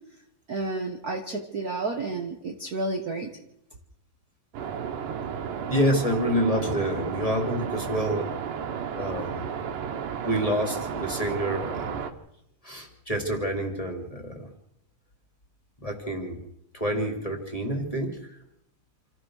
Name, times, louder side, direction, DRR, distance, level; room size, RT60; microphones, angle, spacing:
voice 1, 0.5-3.3, right 3 dB, 55° right, 2 dB, 1.0 m, -31 dB
sound 1, 4.5-12.1, right 7 dB, 75° right, 2.8 m, -33 dB
voice 2, 5.7-8.3 9.0-9.4 10.2-12.1 12.6-14.5 15.8-16.4 16.7-18.2, equal, 10° left, 3 dB, 2.6 m, -28 dB
27.5 x 15.0 x 6.4 m, 0.79 s
omnidirectional pair, 3.9 m